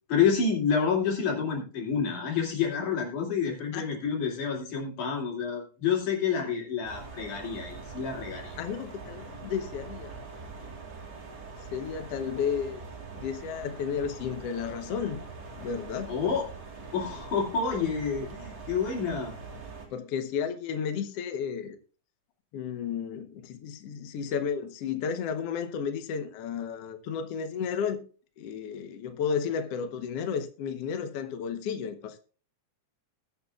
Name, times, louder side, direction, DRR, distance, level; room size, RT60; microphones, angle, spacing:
voice 1, 0.1-8.6 16.1-16.4 16.9-19.3, left 6 dB, 85° left, 4.1 m, -28 dB
sound 1, 6.8-19.9, right 4 dB, 35° right, 2.5 m, -43 dB
voice 2, 8.6-10.2 11.7-12.9 13.1-15.2 15.6-16.1 19.9-21.8 22.5-28.0 28.4-32.2, left 7 dB, 65° left, 1.8 m, -33 dB
20.5 x 7.0 x 2.3 m
omnidirectional pair, 3.5 m